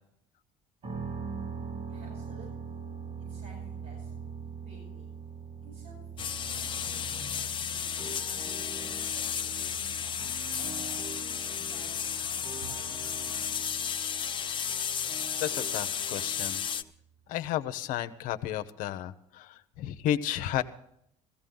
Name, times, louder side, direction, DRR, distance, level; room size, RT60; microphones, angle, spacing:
sound 1, 0.8-16.7, right 6 dB, 45° right, 3.3 m, -43 dB
voice 1, 1.6-2.8 3.2-5.1 5.6-7.4 8.0-11.0 11.4-13.7, right 2 dB, 70° right, -2 dB, 8.0 m, -54 dB
sound 2, 6.2-16.8, left 8 dB, 35° left, 0.7 m, -33 dB
sound 3, 8.0-16.9, right 4 dB, 25° right, 0.7 m, -48 dB
voice 2, 15.4-16.6 17.3-20.6, left 11 dB, 75° left, 11 dB, 0.8 m, -32 dB
16.0 x 15.5 x 3.8 m, 0.71 s
supercardioid pair, 95°, 14 cm